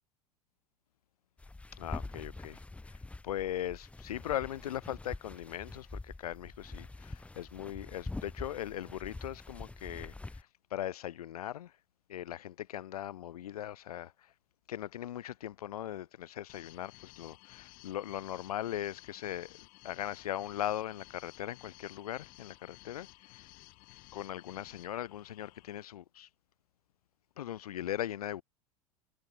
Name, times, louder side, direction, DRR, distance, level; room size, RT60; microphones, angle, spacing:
sound 1, 1.4-10.4, left 2 dB, 5° left, 0.6 m, -45 dB
voice 1, 1.8-2.6 3.2-11.7 12.1-14.1 14.7-23.4 24.1-26.3 27.4-28.4, left 12 dB, 70° left, 0.7 m, -39 dB
sound 2, 16.5-25.8, left 24 dB, 45° left, 1.2 m, -56 dB
figure-of-eight pair, 80°, 20 cm